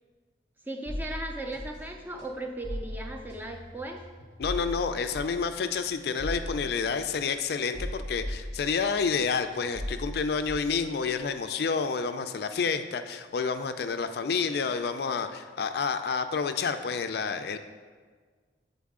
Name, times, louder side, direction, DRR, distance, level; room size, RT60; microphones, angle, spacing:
voice 1, 0.6-4.0, right 1 dB, 10° right, 3 dB, 0.4 m, -37 dB
sound 1, 0.9-9.2 9.5-11.4, equal, 85° right, 1.9 m, -39 dB
voice 2, 4.4-17.6, left 5 dB, 55° left, 8 dB, 0.3 m, -29 dB
8.4 x 4.0 x 3.6 m, 1.5 s
head